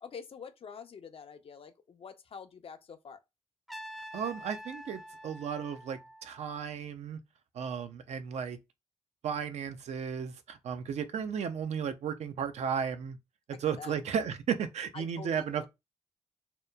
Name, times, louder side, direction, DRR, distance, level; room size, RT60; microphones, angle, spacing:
voice 1, 0.0-3.2 13.5-14.0 14.9-15.7, left 6 dB, 50° left, 0.5 m, -47 dB
Trumpet, 3.7-6.7, equal, ahead, 0.5 m, -46 dB
voice 2, 4.1-7.2 7.6-8.6 9.2-13.2 13.6-15.7, right 7 dB, 65° right, 0.4 m, -34 dB
2.9 x 2.1 x 2.2 m
supercardioid pair, 45°, 12 cm